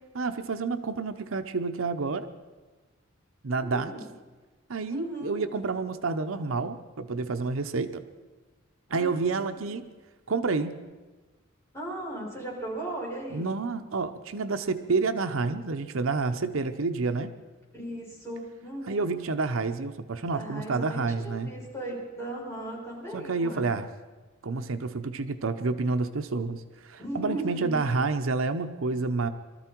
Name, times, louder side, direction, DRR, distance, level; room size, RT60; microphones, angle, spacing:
voice 1, 0.1-2.3 3.4-3.9 4.7-8.0 8.9-9.9 10.3-10.8 13.3-17.3 18.9-21.5 23.1-23.9 24.4-29.3, right 4 dB, 75° right, 8 dB, 0.7 m, -29 dB
voice 2, 3.5-4.0 4.9-5.5 8.9-9.2 9.5-9.7 11.7-13.5 17.7-19.1 20.3-23.7 27.0-27.8, right 1 dB, 15° left, -5 dB, 6.0 m, -37 dB
23.0 x 13.5 x 4.5 m, 1.3 s
head